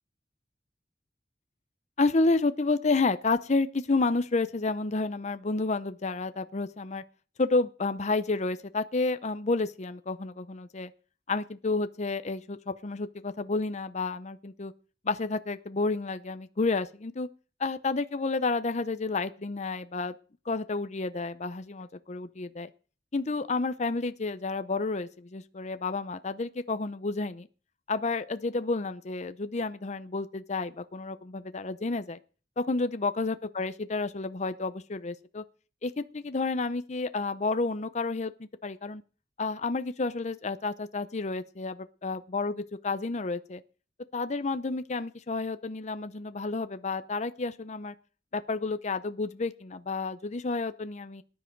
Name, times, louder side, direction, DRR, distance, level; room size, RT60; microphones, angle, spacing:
voice 1, 2.0-7.0 7.4-10.9 11.3-14.7 15.0-17.3 17.6-20.1 20.5-22.7 23.1-27.5 27.9-32.2 32.6-35.4 35.8-39.0 39.4-41.7 42.0-43.6 44.1-47.9 48.3-51.2, left 3 dB, 40° left, 11 dB, 0.7 m, -30 dB
18.5 x 10.0 x 4.6 m, 0.38 s
head